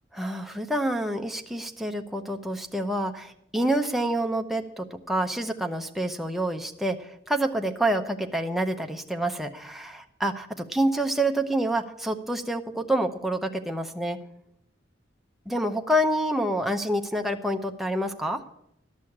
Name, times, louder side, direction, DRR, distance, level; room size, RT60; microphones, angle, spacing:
voice 1, 0.2-14.2 15.5-18.4, right 1 dB, ahead, 4 dB, 0.7 m, -27 dB
12.5 x 6.3 x 8.4 m, 0.77 s
head